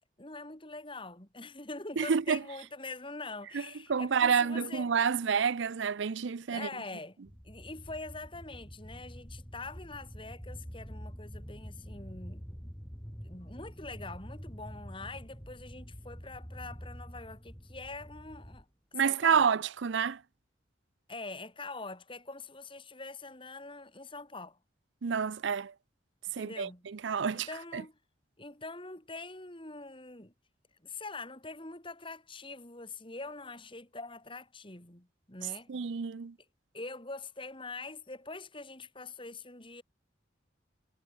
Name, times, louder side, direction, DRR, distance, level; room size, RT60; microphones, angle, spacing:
voice 1, 0.2-4.9 6.5-12.4 13.2-18.7 19.0-19.5 21.1-24.6 26.4-26.8 27.3-28.0 28.4-30.3 30.8-35.7 36.7-39.8, left 3 dB, 25° left, 3.7 m, -44 dB
voice 2, 2.0-2.4 3.5-3.6 3.9-6.7 18.9-20.2 25.0-25.7 26.3-27.5 27.7-27.8 35.7-36.3, right 6 dB, 75° right, 0.5 m, -29 dB
sound 1, 7.3-18.6, equal, 10° left, 6.7 m, -46 dB
head